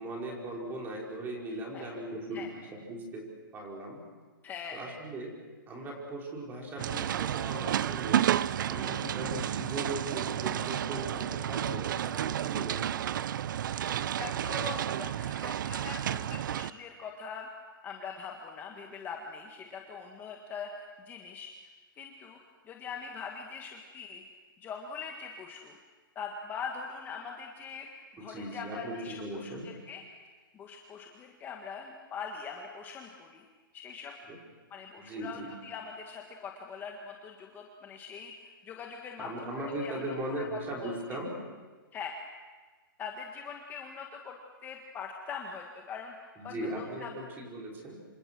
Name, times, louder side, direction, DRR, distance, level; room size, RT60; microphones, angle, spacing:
voice 1, 0.0-4.0 4.7-5.4 5.7-8.3 8.7-12.9 28.2-29.8 34.3-34.4 35.0-35.5 39.2-41.4 46.4-48.1, right 1 dB, 15° right, -1 dB, 5.5 m, -38 dB
voice 2, 4.4-4.8 8.8-9.0 13.7-17.5 17.8-21.5 21.9-22.4 22.7-24.2 24.6-25.7 26.2-30.0 30.5-33.4 33.7-34.1 34.7-39.5 39.8-40.9 41.9-42.1 43.0-44.4 44.6-46.1 46.4-47.1, left 6 dB, 15° left, 1 dB, 1.7 m, -42 dB
sound 1, 6.8-16.7, right 10 dB, 60° right, 0.7 m, -31 dB
27.5 x 26.0 x 6.3 m, 1.4 s
hypercardioid pair, 155°, 12 cm